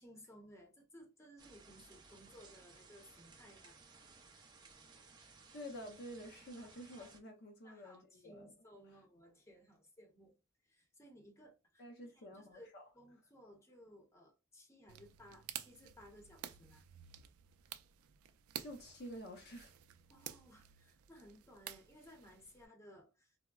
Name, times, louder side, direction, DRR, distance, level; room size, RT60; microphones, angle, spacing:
voice 1, 0.0-3.8 6.6-7.1 7.6-11.9 12.1-16.8 20.1-23.4, equal, 15° left, 0.7 m, -60 dB
sound 1, 1.4-7.2, right 4 dB, 20° right, 0.4 m, -60 dB
voice 2, 5.5-8.5 11.8-12.9 18.6-19.7, equal, 50° left, 0.6 m, -50 dB
sound 2, 14.9-22.7, right 10 dB, 85° right, 0.3 m, -52 dB
3.5 x 2.0 x 2.3 m
head